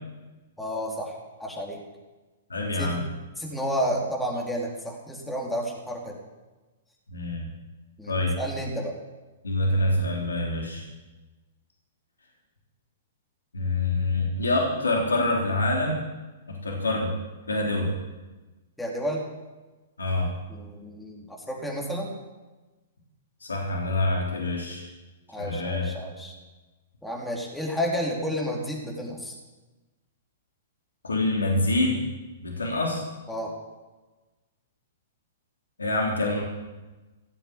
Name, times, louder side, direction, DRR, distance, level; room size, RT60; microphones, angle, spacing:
voice 1, 0.6-1.8 2.7-3.0 3.4-6.2 8.0-8.9 18.8-19.3 20.5-22.1 25.3-26.3 27.0-29.3 33.3-33.5, equal, 5° left, -2 dB, 3.5 m, -31 dB
voice 2, 2.5-3.0 7.1-7.5 8.1-8.3 9.4-10.8 13.5-16.0 16.5-17.1 17.5-17.9 20.0-20.3 23.4-24.9 25.4-25.9 31.0-32.0 32.4-33.0 35.8-36.4, left 2 dB, 90° left, -1 dB, 3.5 m, -26 dB
16.5 x 7.9 x 8.8 m, 1.2 s
hypercardioid pair, 115°, 0 cm